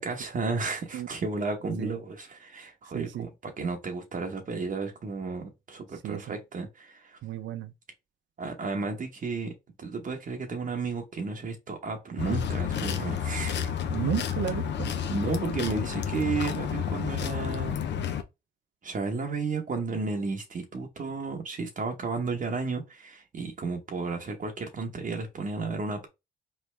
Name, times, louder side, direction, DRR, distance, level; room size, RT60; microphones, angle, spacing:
voice 1, 0.0-7.2 8.4-9.5 9.8-13.7 15.1-17.8 18.8-26.1, right 4 dB, 40° right, 1.0 m, -33 dB
voice 2, 2.9-3.3 6.0-6.3 7.2-7.7 13.9-14.9, right 11 dB, 70° right, 0.6 m, -33 dB
sound 1, 12.2-18.2, left 8 dB, 65° left, 0.7 m, -30 dB
4.2 x 3.2 x 3.2 m
cardioid pair, 90°, 20 cm